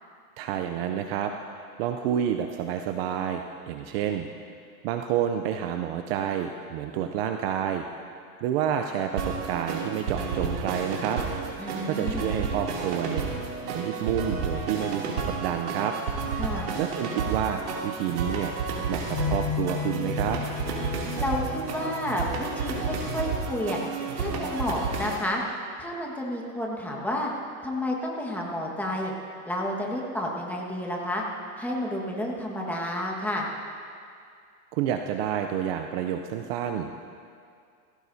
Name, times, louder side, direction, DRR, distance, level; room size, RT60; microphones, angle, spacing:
voice 1, 0.4-4.3 4.8-7.8 8.4-11.2 11.8-13.3 13.7-16.0 16.8-18.5 18.9-20.4 34.7-36.9, right 9 dB, 40° right, 6 dB, 0.6 m, -29 dB
sound 1, 9.2-25.2, right 4 dB, 85° right, 3.0 m, -31 dB
voice 2, 11.6-12.3 16.4-16.7 21.2-23.8 24.1-25.4 25.8-27.3 27.6-29.1 29.5-31.2 31.6-33.5, left 1 dB, 5° left, -2 dB, 1.6 m, -30 dB
kempul zoom recorder, 19.1-23.3, left 7 dB, 20° left, 3.3 m, -35 dB
18.5 x 16.5 x 2.8 m, 2.3 s
supercardioid pair, 140°, 44 cm